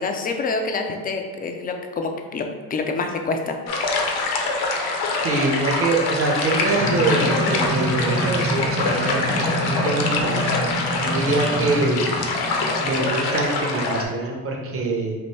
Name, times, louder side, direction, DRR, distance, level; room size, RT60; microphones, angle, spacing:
voice 1, 0.0-2.4 2.7-3.6, left 3 dB, 25° left, 4 dB, 0.3 m, -26 dB
sound 1, 3.7-14.0, left 3 dB, 65° left, 0.7 m, -24 dB
voice 2, 5.2-12.1 12.8-15.2, right 3 dB, 35° right, 0 dB, 0.8 m, -24 dB
sound 2, 6.8-13.1, right 1 dB, 75° right, 1.1 m, -27 dB
4.3 x 2.6 x 3.1 m, 1.5 s
cardioid pair, 115°, 41 cm